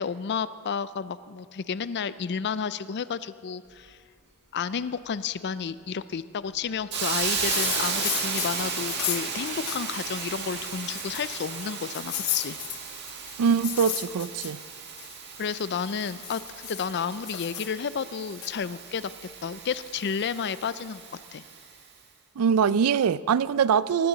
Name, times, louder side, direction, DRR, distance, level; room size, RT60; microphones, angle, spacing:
voice 1, 0.0-4.0 4.5-12.6 15.4-19.1 19.4-21.0 21.3-21.4, left 6 dB, 50° left, 0.4 m, -31 dB
Hiss, 6.9-21.7, right 5 dB, 50° right, 1.7 m, -34 dB
sound 1, 7.2-10.1 10.4-10.5 10.9-11.5 11.9-15.2 15.7-17.7 18.4-18.5, left 12 dB, 70° left, 0.9 m, -34 dB
voice 2, 13.4-14.6 22.4-24.1, right 7 dB, 80° right, 0.4 m, -23 dB
19.5 x 15.0 x 4.0 m
head